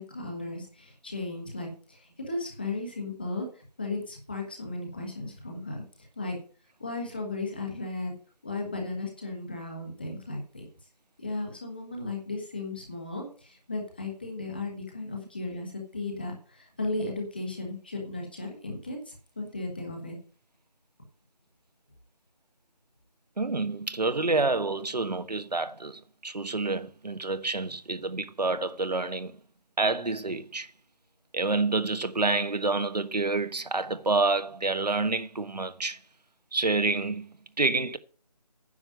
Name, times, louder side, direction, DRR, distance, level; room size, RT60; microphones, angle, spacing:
voice 1, 0.0-6.4 6.8-8.1 8.4-10.7 11.2-20.2, left 2 dB, 15° left, 1.5 m, -35 dB
voice 2, 23.4-29.3 29.8-30.7 31.3-36.0 36.5-38.0, right 3 dB, 75° right, 1.3 m, -28 dB
9.9 x 6.8 x 7.7 m
figure-of-eight pair, 175°, 21 cm